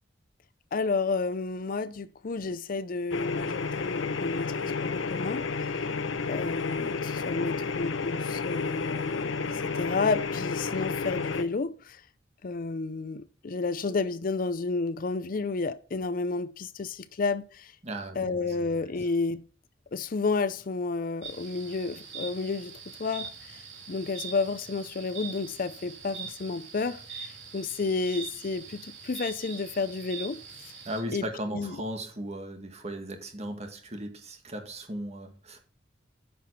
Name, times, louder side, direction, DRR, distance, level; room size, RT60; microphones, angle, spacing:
voice 1, 0.7-5.9 6.3-12.0 12.4-17.7 18.2-19.4 19.9-22.7 23.0-30.7 31.1-31.2 31.5-31.8, left 4 dB, 45° left, 0.5 m, -31 dB
sound 1, 3.1-11.4, left 4 dB, 85° left, 0.8 m, -31 dB
voice 2, 17.8-18.6 30.9-35.6, right 1 dB, 35° right, 1.8 m, -37 dB
sound 2, 21.2-31.0, right 5 dB, 70° right, 3.0 m, -43 dB
9.6 x 5.9 x 5.7 m
head